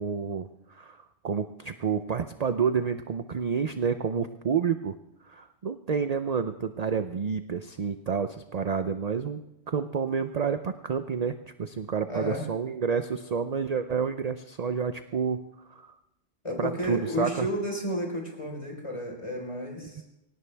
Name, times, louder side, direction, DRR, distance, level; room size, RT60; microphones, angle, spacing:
voice 1, 0.0-5.0 5.3-15.4 15.7-15.9 16.6-17.5 20.0-20.1, right 6 dB, 45° right, 9 dB, 0.6 m, -29 dB
voice 2, 12.1-12.4 16.4-20.0, equal, 25° left, 1 dB, 4.1 m, -32 dB
23.5 x 18.0 x 3.4 m, 0.91 s
omnidirectional pair, 1.3 m